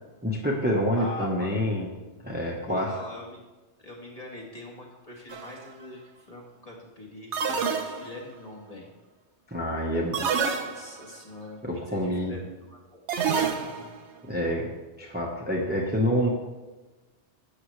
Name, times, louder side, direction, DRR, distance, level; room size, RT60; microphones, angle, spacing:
voice 1, 0.2-1.9 2.2-2.9 9.5-10.2 11.6-12.3 14.3-14.7 15.0-16.3, equal, 10° right, -2 dB, 1.1 m, -27 dB
voice 2, 0.9-1.6 2.7-3.4 3.8-8.9 10.0-11.6 11.9-13.9, left 2 dB, 35° left, -3 dB, 1.9 m, -43 dB
sound 1, 5.3-5.6 7.3-8.4 10.1-11.1 13.1-14.0, right 6 dB, 90° right, 1.1 m, -28 dB
11.5 x 7.9 x 3.3 m, 1.2 s
omnidirectional pair, 1.1 m